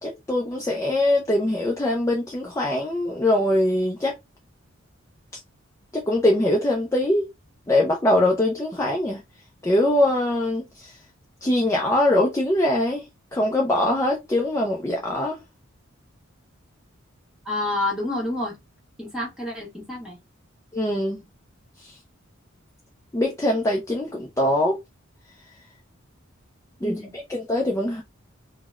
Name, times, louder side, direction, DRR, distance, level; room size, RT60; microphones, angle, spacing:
voice 1, 0.0-4.1 5.9-7.2 7.7-9.2 9.6-10.9 11.4-13.0 13.3-15.4 20.7-21.2 21.8-21.9 23.1-24.8 26.8-28.0, left 1 dB, 15° left, 0.4 m, -22 dB
voice 2, 17.4-18.5 19.0-20.2 26.8-27.1, left 2 dB, 5° right, 1.1 m, -28 dB
3.9 x 2.1 x 2.3 m
head